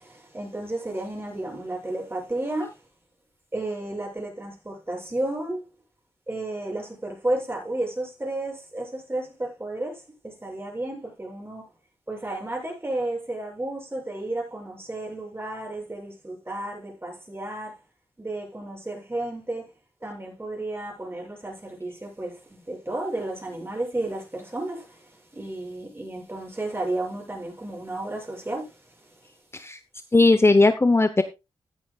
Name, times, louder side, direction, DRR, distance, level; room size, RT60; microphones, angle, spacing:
voice 1, 0.0-2.8 3.5-5.6 6.3-11.7 12.1-17.8 18.2-19.7 20.0-29.3, right 2 dB, 25° right, 7.5 m, -32 dB
voice 2, 30.1-31.2, left 2 dB, 25° left, 0.8 m, -18 dB
15.0 x 9.8 x 2.4 m
cardioid pair, 55°, 10 cm